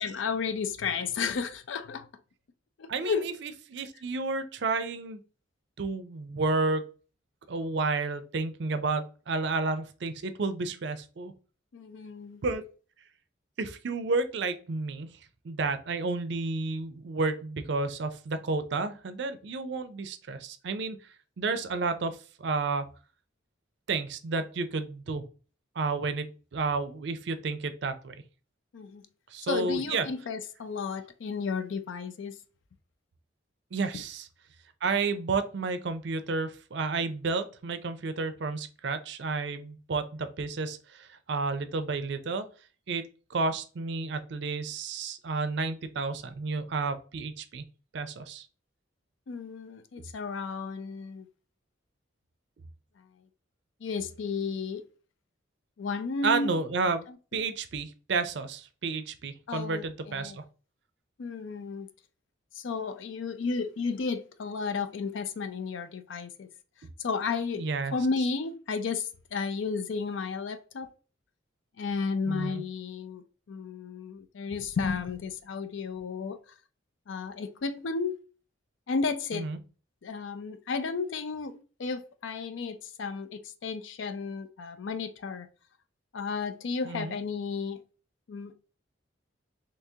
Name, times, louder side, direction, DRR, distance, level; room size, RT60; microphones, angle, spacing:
voice 1, 0.0-2.1 2.8-3.3 11.7-12.4 28.7-29.0 29.4-32.3 33.9-34.0 49.3-51.3 53.0-53.1 53.8-54.8 55.8-56.6 57.1-57.2 59.5-60.4 61.2-61.9 62.5-66.5 67.0-67.6 67.9-70.9 71.8-76.4 77.1-78.2 78.9-79.5 80.0-85.5 86.1-87.8 88.3-88.5, left 5 dB, 70° left, 0.4 m, -33 dB
voice 2, 2.9-5.2 5.8-6.8 7.5-11.3 12.4-12.6 13.6-15.1 15.4-21.0 21.4-22.9 23.9-25.2 25.8-28.2 29.3-30.1 33.7-34.3 34.8-42.5 42.9-43.0 43.3-47.6 47.9-48.5 56.2-57.0 57.3-60.4 67.6-68.0 72.3-72.6 79.3-79.6 86.8-87.1, right 3 dB, 60° right, 0.4 m, -31 dB
3.5 x 2.8 x 2.7 m
head